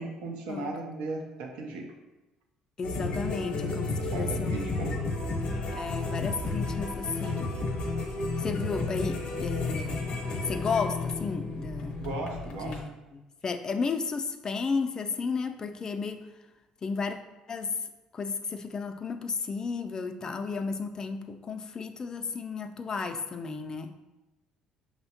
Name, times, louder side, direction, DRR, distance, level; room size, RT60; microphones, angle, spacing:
voice 1, 0.0-1.9 4.0-5.0 12.0-12.8, right 2 dB, 80° right, 2 dB, 0.6 m, -37 dB
sound 1, 2.8-12.8, left 3 dB, 60° left, 0.7 m, -32 dB
voice 2, 2.8-5.1 5.7-7.5 8.4-10.1 10.5-12.0 12.6-16.2 16.8-17.2 17.5-17.7 18.1-23.9, left 4 dB, 35° left, 7 dB, 0.3 m, -33 dB
5.4 x 2.1 x 2.8 m, 1.0 s
supercardioid pair, 85°, 2 cm